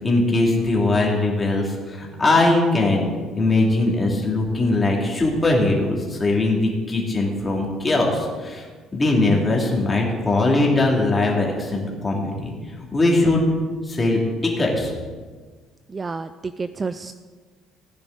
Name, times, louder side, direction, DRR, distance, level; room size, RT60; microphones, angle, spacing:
voice 1, 0.0-3.1 3.4-8.7 8.9-12.5 12.9-13.5 13.9-14.9, left 2 dB, 15° left, -2 dB, 2.4 m, -20 dB
voice 2, 15.9-17.1, right 4 dB, 20° right, 11 dB, 0.3 m, -30 dB
16.5 x 9.9 x 3.9 m, 1.4 s
cardioid pair, 155°, 0 cm